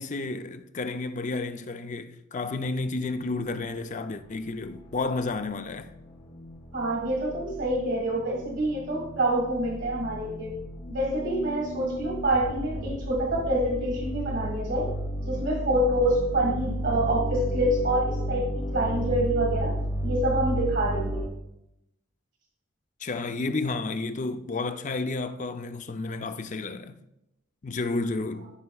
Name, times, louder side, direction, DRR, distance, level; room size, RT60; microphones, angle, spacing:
voice 1, 0.0-5.9 23.0-27.0 27.6-28.5, left 3 dB, 35° left, 0.5 m, -31 dB
sound 1, 4.9-21.3, equal, 85° left, 3.1 m, -33 dB
voice 2, 6.7-10.6 10.9-14.9 15.3-19.7 20.0-21.2, right 1 dB, 60° right, 1.7 m, -27 dB
13.5 x 5.6 x 2.3 m
head